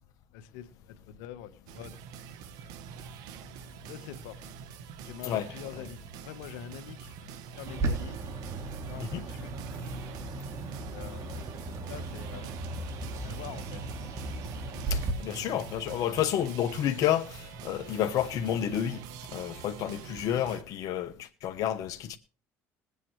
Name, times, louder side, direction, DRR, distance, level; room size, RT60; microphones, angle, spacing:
voice 1, 0.3-2.0 2.6-2.7 3.9-4.4 5.0-6.0 6.2-8.3 8.9-9.5 10.9-11.4 11.9-12.6 13.2-13.8, left 10 dB, 80° left, 1.2 m, -45 dB
sound 1, 1.7-20.6, right 7 dB, 75° right, 1.1 m, -45 dB
Bird, 7.7-15.1, right 2 dB, 50° right, 2.8 m, -36 dB
voice 2, 14.9-19.0 19.3-22.2, left 10 dB, 60° left, 1.0 m, -30 dB
20.5 x 8.4 x 3.2 m
supercardioid pair, 80°, 7 cm